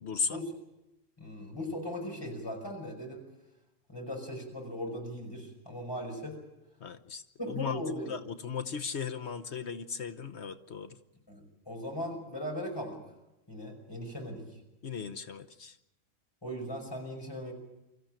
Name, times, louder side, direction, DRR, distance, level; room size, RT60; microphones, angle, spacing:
voice 1, 0.0-0.4 6.8-7.8 8.1-11.0 14.8-15.7, left 6 dB, 60° left, 8 dB, 1.2 m, -37 dB
voice 2, 1.2-3.2 3.9-6.3 7.4-8.1 11.3-13.0 13.5-14.5 16.4-17.5, equal, 20° left, 2 dB, 5.7 m, -38 dB
25.0 x 14.5 x 9.0 m, 0.91 s
omnidirectional pair, 1.3 m